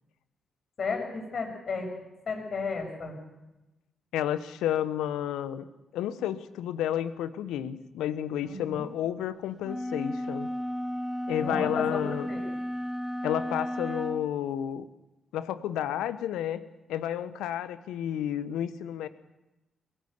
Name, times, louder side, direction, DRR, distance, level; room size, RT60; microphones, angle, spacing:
voice 1, 0.8-1.9 2.3-3.2 8.4-8.8 11.4-12.4, left 4 dB, 55° left, 2 dB, 6.7 m, -33 dB
voice 2, 4.1-5.7 5.9-10.5 11.3-12.3 13.2-14.8 15.3-16.6 16.9-19.1, left 10 dB, 75° left, 13 dB, 1.1 m, -31 dB
sound 1, 9.6-14.3, equal, ahead, 2.2 m, -33 dB
22.5 x 17.0 x 8.2 m, 1.0 s
hypercardioid pair, 40°, 0 cm